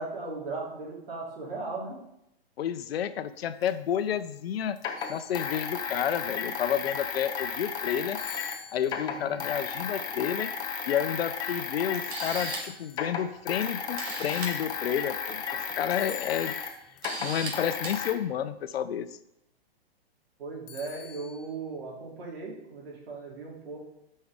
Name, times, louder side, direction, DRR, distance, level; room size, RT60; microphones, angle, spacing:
voice 1, 0.0-2.0 9.0-9.4 20.4-23.8, right 3 dB, 65° right, -3 dB, 3.2 m, -37 dB
voice 2, 2.6-4.8 5.1-8.2 8.7-10.5 10.9-15.4 15.7-16.5 17.2-19.1, left 9 dB, 70° left, 12 dB, 0.7 m, -30 dB
sound 1, 3.7-3.8 4.8-8.6 8.8-12.6 12.9-18.1, left 6 dB, 15° left, 0.5 m, -34 dB
sound 2, 5.0-5.9 8.2-9.4 12.4-13.4 15.9-16.9 20.7-21.5, left 10 dB, 30° left, 0.8 m, -47 dB
Camera, 11.4-11.5 11.9-12.8 13.6-13.7 14.0-14.5 15.7-15.9 16.4-16.5 17.0-17.5 17.8-17.9, right 3 dB, 90° right, 2.2 m, -37 dB
11.5 x 5.4 x 3.6 m, 0.83 s
hypercardioid pair, 145°, 31 cm